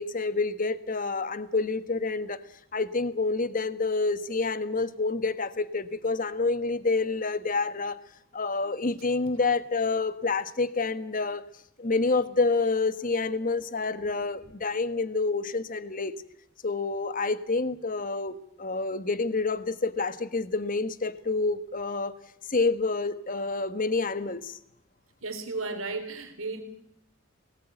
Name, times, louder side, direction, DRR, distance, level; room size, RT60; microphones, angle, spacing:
voice 1, 0.0-2.4 2.7-8.0 8.3-11.4 11.8-16.1 16.6-22.2 22.5-24.6, left 3 dB, 40° left, 12 dB, 1.3 m, -28 dB
voice 2, 25.2-26.6, right 3 dB, 85° right, 7 dB, 3.4 m, -34 dB
21.5 x 18.5 x 9.1 m, 0.74 s
head